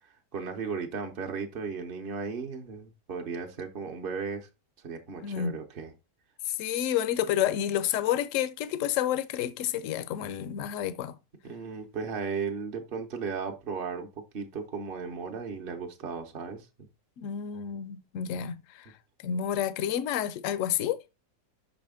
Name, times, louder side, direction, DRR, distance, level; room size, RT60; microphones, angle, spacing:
voice 1, 0.0-4.5 4.8-5.9 11.4-16.9, right 5 dB, 45° right, 0.8 m, -36 dB
voice 2, 5.2-5.5 6.5-11.2 17.2-18.9 19.2-21.0, left 10 dB, 65° left, 0.8 m, -29 dB
6.1 x 5.0 x 3.6 m
omnidirectional pair, 1.8 m